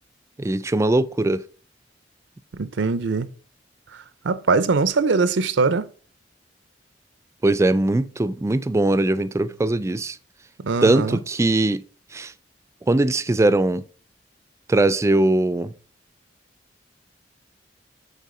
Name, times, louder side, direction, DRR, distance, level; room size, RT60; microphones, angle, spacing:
voice 1, 0.4-1.4 7.4-10.2 10.8-11.8 12.1-12.3 12.9-13.8 14.7-15.7, right 2 dB, 15° right, 0.3 m, -20 dB
voice 2, 2.5-3.3 4.2-5.9 10.6-11.2, right 4 dB, 90° right, 0.6 m, -21 dB
8.3 x 4.2 x 3.8 m
head